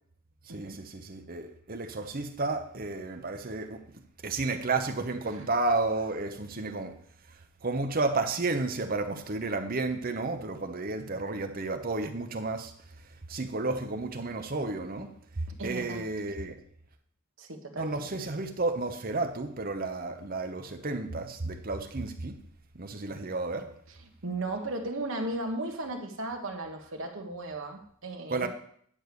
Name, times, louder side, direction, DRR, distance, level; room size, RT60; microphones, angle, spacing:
voice 1, 0.5-7.0 7.6-12.7 13.3-16.6 17.8-22.4 22.7-23.7 28.3-28.5, right 3 dB, 40° right, 0.9 m, -32 dB
voice 2, 15.6-16.0 17.4-18.0 24.2-28.5, right 2 dB, 60° right, 1.4 m, -35 dB
10.0 x 4.7 x 6.9 m
head